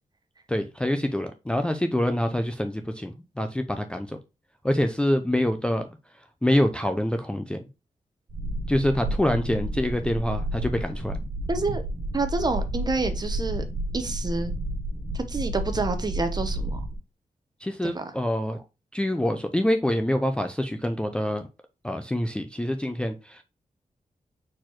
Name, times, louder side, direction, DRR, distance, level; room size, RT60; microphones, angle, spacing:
voice 1, 0.5-4.2 4.6-5.9 6.4-7.7 8.7-11.1 17.6-18.6 18.9-21.5 21.8-23.4, left 1 dB, 5° left, 0.4 m, -26 dB
sound 1, 8.3-17.0, right 1 dB, 55° right, 1.7 m, -31 dB
voice 2, 11.5-11.8 12.1-13.6 13.9-14.5 15.1-16.8 17.8-18.1, right 3 dB, 30° right, 0.8 m, -28 dB
4.3 x 4.3 x 2.9 m
wide cardioid pair, 100°, 13 cm